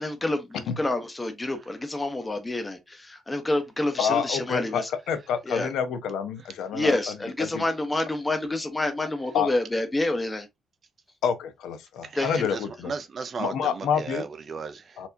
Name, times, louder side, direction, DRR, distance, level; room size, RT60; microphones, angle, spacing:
voice 1, 0.0-4.9 5.5-5.7 6.7-10.5 12.2-12.5, left 2 dB, 15° left, 0.7 m, -28 dB
voice 2, 4.0-7.0 7.4-7.6 9.3-9.5 11.2-12.9 13.4-14.3 15.0-15.1, left 7 dB, 80° left, 0.6 m, -28 dB
voice 3, 12.0-15.0, right 5 dB, 35° right, 0.4 m, -35 dB
4.3 x 2.8 x 2.6 m
cardioid pair, 160°, 0 cm